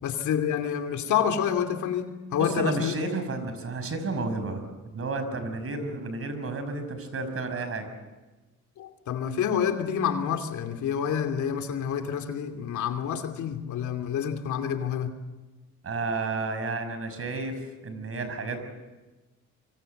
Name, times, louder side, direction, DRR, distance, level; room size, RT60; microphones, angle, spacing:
voice 1, 0.0-2.9 8.8-15.1, left 8 dB, 75° left, 6 dB, 2.8 m, -28 dB
voice 2, 2.4-4.6 4.9-7.9 15.8-18.6, right 3 dB, 50° right, 9 dB, 5.8 m, -31 dB
25.5 x 24.5 x 7.9 m, 1.2 s
cardioid pair, 90°, 30 cm